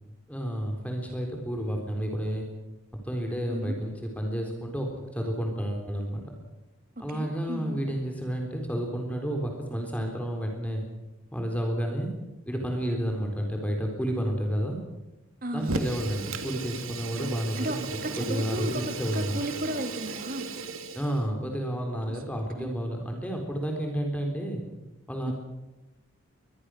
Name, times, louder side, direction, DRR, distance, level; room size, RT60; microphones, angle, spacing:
voice 1, 0.3-2.5 3.0-6.2 7.0-10.9 11.3-12.1 12.5-14.8 15.5-17.8 18.2-19.4 20.9-24.6 25.1-25.3, equal, 5° left, 2 dB, 3.8 m, -31 dB
voice 2, 7.0-7.8 15.4-15.9 17.2-18.8 19.1-20.5 22.1-22.2 22.6-22.7 25.3-25.4, right 1 dB, 40° right, 6 dB, 2.6 m, -35 dB
Fire, 15.6-21.2, right 4 dB, 75° right, 2.2 m, -36 dB
23.5 x 20.5 x 6.4 m, 1.0 s
head